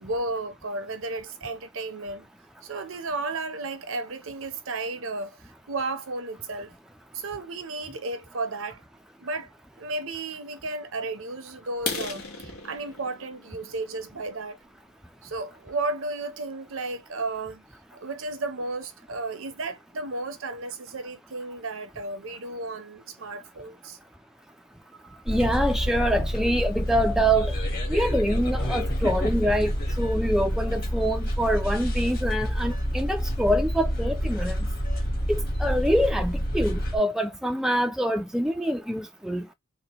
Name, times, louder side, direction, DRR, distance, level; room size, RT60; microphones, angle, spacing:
voice 1, 0.0-2.3 2.6-6.7 7.1-8.8 9.2-9.5 9.8-14.6 15.2-17.6 17.9-24.0 25.1-25.2, right 2 dB, 70° right, 0.7 m, -33 dB
sound 1, 11.7-15.5 16.0-16.2 16.7-16.8 17.2-17.4 17.7-17.8 18.2-18.3 18.6-19.1, left 4 dB, 85° left, 1.1 m, -37 dB
sound 2, 25.3-37.0, equal, 45° left, 1.4 m, -28 dB
voice 2, 25.3-27.5 27.9-34.6 35.3-39.5, equal, ahead, 0.3 m, -25 dB
4.0 x 2.1 x 2.9 m
head